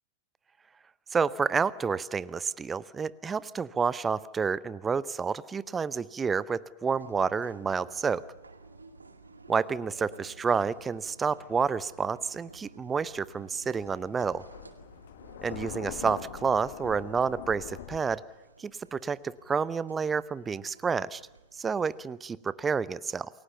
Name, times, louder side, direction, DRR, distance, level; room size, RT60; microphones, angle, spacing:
voice 1, 1.1-8.3 9.5-14.4 15.4-18.2 18.6-21.2 21.6-23.3, right 5 dB, 15° right, 19 dB, 0.8 m, -29 dB
sound 1, 6.9-22.1, right 3 dB, 80° right, 2.1 m, -54 dB
Thunder, 13.0-18.0, left 11 dB, 55° left, 1.5 m, -43 dB
29.0 x 21.5 x 7.0 m, 1.1 s
figure-of-eight pair, 90°, 0 cm